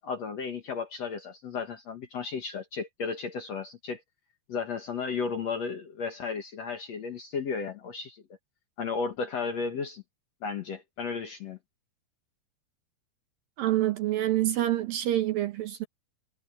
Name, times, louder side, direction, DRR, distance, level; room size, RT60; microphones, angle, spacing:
voice 1, 0.0-4.0 4.5-8.2 8.8-10.0 10.4-11.6, left 5 dB, 55° left, 2.1 m, -34 dB
voice 2, 13.6-15.9, right 13 dB, 70° right, 2.3 m, -27 dB
omnidirectional pair, 4.9 m